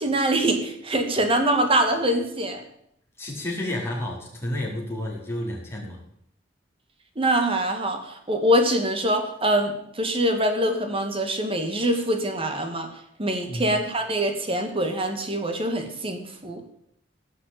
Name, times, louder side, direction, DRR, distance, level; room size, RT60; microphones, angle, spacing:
voice 1, 0.0-2.6 7.2-12.9 13.2-16.6, right 1 dB, 30° right, 5 dB, 2.2 m, -24 dB
voice 2, 3.2-6.0 13.5-13.7, left 1 dB, 15° left, -3 dB, 4.4 m, -31 dB
17.0 x 6.4 x 8.9 m, 0.73 s
head